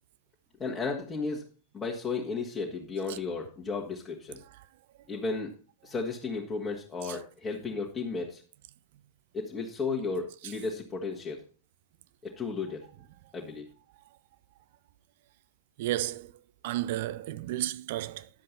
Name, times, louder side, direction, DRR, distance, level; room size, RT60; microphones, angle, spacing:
voice 1, 0.6-1.5 1.7-4.4 5.1-5.5 5.8-8.4 9.3-11.4 12.2-12.9 13.3-13.7, left 4 dB, 20° left, 1.9 m, -34 dB
voice 2, 15.8-16.3 16.6-18.3, right 14 dB, 50° right, 0.6 m, -33 dB
11.5 x 7.5 x 4.1 m
figure-of-eight pair, 90°, 0 cm